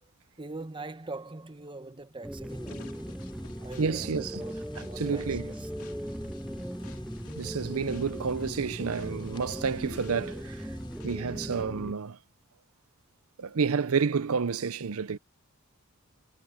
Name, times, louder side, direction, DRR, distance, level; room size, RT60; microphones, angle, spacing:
voice 1, 0.4-3.0 3.6-5.7, right 2 dB, 20° right, 1.0 m, -43 dB
sound 1, 2.2-11.9, equal, ahead, 0.4 m, -38 dB
sound 2, 2.5-11.0, left 1 dB, 20° left, 4.4 m, -49 dB
sound 3, 2.7-11.8, left 4 dB, 80° left, 2.2 m, -55 dB
voice 2, 3.8-4.4 5.0-5.5 7.3-10.7 11.0-12.2 13.4-15.2, right 5 dB, 70° right, 0.6 m, -30 dB
head